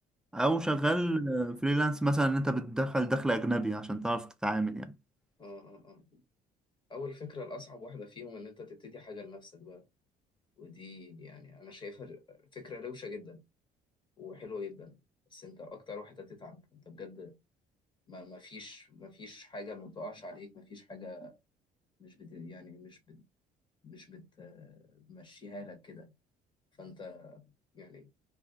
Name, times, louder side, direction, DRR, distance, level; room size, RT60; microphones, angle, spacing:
voice 1, 0.3-4.9, right 1 dB, 5° right, 0.4 m, -29 dB
voice 2, 5.4-6.2 6.9-9.8 10.6-13.4 14.2-15.0 15.3-17.4 18.1-21.3 22.0-23.2 23.8-26.1 26.8-27.4 27.7-28.1, left 3 dB, 30° left, 1.1 m, -45 dB
2.3 x 2.3 x 3.8 m
cardioid pair, 110°, 17 cm